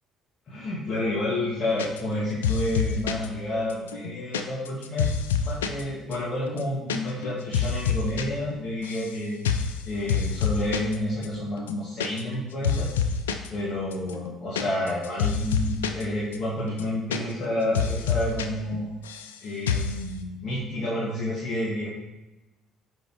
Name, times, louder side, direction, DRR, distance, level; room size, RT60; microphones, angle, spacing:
voice 1, 0.5-9.4 9.9-12.9 13.5-18.9 19.4-21.9, left 1 dB, 45° left, -7 dB, 1.8 m, -30 dB
sound 1, 1.8-2.2 2.4-3.3 3.7-5.8 6.1-6.2 6.5-7.0 7.2-8.2 8.5-9.1 9.4-9.8 10.1-11.0 11.2-11.3 11.6-12.4 12.6-13.5 13.9-16.0 16.3-16.4 16.7-17.5 17.7-18.5 18.7-19.3 19.7-20.0, left 6 dB, 80° left, 0.4 m, -27 dB
5.3 x 4.8 x 4.6 m, 1.0 s
figure-of-eight pair, 50°, 0 cm